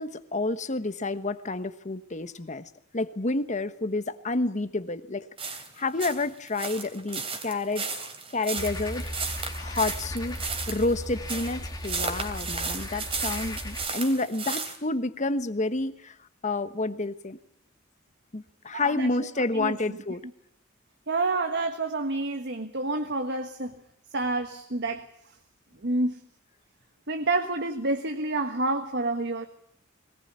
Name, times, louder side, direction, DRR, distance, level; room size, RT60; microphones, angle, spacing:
voice 1, 0.0-10.4 10.7-16.1 16.4-17.4 18.3-20.2, left 2 dB, 35° left, 12 dB, 1.2 m, -30 dB
sound 1, 5.4-14.8, right 4 dB, 30° right, 3.3 m, -34 dB
sound 2, 8.6-13.9, left 1 dB, 20° left, 2.0 m, -37 dB
voice 2, 18.7-19.1 19.5-20.0 21.1-23.8 24.1-25.1 25.8-26.2 27.1-29.5, right 2 dB, 55° right, 6 dB, 1.6 m, -28 dB
21.5 x 20.0 x 9.7 m, 0.70 s
head